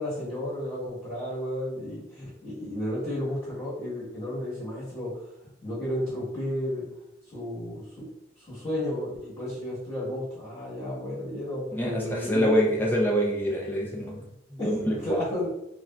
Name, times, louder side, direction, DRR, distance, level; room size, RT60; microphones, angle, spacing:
voice 1, 0.0-5.1 5.6-6.8 7.3-8.1 8.5-12.5 14.6-15.5, left 1 dB, 30° left, -12 dB, 1.1 m, -33 dB
voice 2, 11.7-15.5, equal, 10° left, -2 dB, 0.5 m, -26 dB
3.2 x 2.4 x 2.2 m, 0.84 s
head